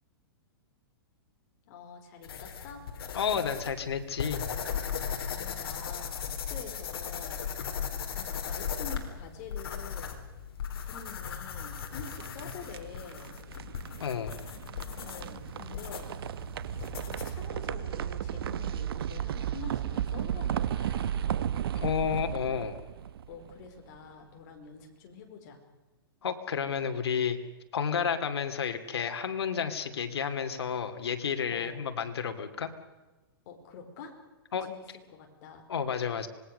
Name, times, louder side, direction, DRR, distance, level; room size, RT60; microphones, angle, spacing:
voice 1, 1.7-2.8 5.3-7.5 8.1-10.2 10.7-13.3 15.0-16.1 16.6-21.3 23.3-25.6 27.9-28.2 31.5-31.8 33.4-34.1 34.6-35.6, left 5 dB, 40° left, 3 dB, 4.8 m, -47 dB
sound 1, 2.2-17.5, left 7 dB, 70° left, 3.9 m, -38 dB
voice 2, 3.1-4.5 14.0-14.4 21.7-22.8 26.2-27.4 27.7-32.7 34.5-34.7 35.7-36.3, left 7 dB, 90° left, 7 dB, 2.7 m, -31 dB
sound 2, 11.8-23.9, right 10 dB, 65° right, 1.2 m, -34 dB
25.5 x 20.5 x 6.7 m, 1.2 s
hypercardioid pair, 155°, 13 cm